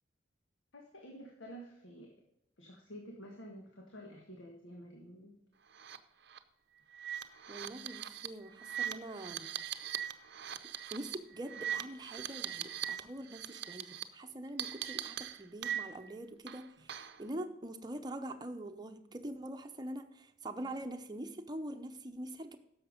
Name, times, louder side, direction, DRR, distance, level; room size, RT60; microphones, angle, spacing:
voice 1, 0.7-2.1 2.6-5.3, equal, 85° left, 0 dB, 1.7 m, -50 dB
sound 1, 5.7-6.0 6.3-6.4 6.9-13.0 13.3-14.0 14.6-16.1 16.5-17.2, right 10 dB, 60° right, 0.6 m, -40 dB
voice 2, 7.5-9.5 10.9-22.6, right 1 dB, 20° right, 6 dB, 0.8 m, -44 dB
10.5 x 7.1 x 5.2 m, 0.81 s
head